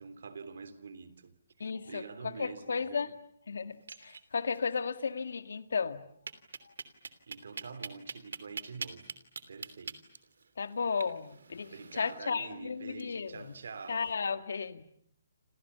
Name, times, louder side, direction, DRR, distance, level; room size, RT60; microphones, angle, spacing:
voice 1, 0.0-3.1 7.0-9.1 9.5-10.0 11.7-14.0, right 5 dB, 65° right, 3.3 m, -46 dB
voice 2, 1.6-3.1 3.5-6.0 6.7-6.8 10.6-13.5 13.9-14.8, left 5 dB, 75° left, 1.9 m, -34 dB
sound 1, 3.7-4.6 4.9-5.0 5.3-5.4 6.3-14.1, right 5 dB, 85° right, 3.0 m, -45 dB
29.5 x 27.5 x 7.0 m
hypercardioid pair, 175°, 0 cm